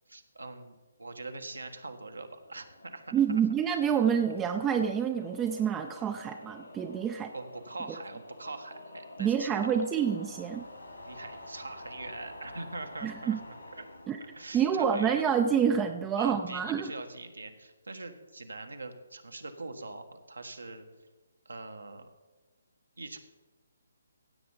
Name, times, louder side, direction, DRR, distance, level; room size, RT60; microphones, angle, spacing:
voice 1, 0.1-3.4 7.3-10.1 11.0-13.8 14.2-15.1 16.2-20.9 21.4-22.1 23.0-23.2, right 3 dB, 80° right, 6 dB, 1.4 m, -43 dB
sound 1, 1.5-15.8, left 1 dB, 80° left, 4.0 m, -49 dB
voice 2, 3.1-7.3 9.2-10.6 13.0-13.4 14.1-14.2 14.5-16.9, right 8 dB, 15° right, 5 dB, 0.5 m, -27 dB
16.0 x 7.7 x 3.9 m, 1.3 s
figure-of-eight pair, 140°, 0 cm